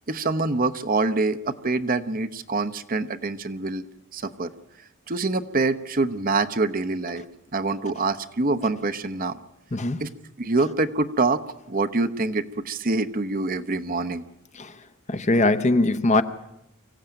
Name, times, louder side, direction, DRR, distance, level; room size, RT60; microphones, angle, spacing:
voice 1, 0.1-3.8 4.1-4.5 5.1-7.2 7.5-9.4 10.0-10.1 10.4-11.4 11.7-14.2, right 3 dB, 40° right, 11 dB, 0.8 m, -25 dB
voice 2, 9.7-10.0 14.5-14.7 15.1-16.2, left 2 dB, 35° left, 11 dB, 0.9 m, -21 dB
24.5 x 15.5 x 9.0 m, 0.84 s
head